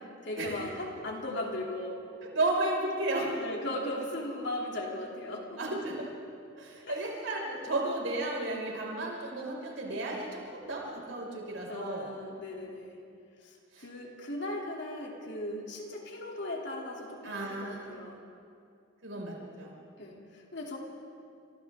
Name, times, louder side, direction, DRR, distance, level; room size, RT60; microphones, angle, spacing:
voice 1, 0.0-2.0 3.3-5.8 6.8-7.0 10.6-10.7 11.7-13.0 13.4-18.2 20.0-20.8, left 1 dB, 60° left, -1 dB, 3.0 m, -38 dB
voice 2, 2.2-3.4 5.6-6.1 6.6-12.1 13.7-13.9 17.2-17.9 19.0-19.7, right 2 dB, 80° right, -2 dB, 5.4 m, -33 dB
30.0 x 27.5 x 3.7 m, 2.4 s
head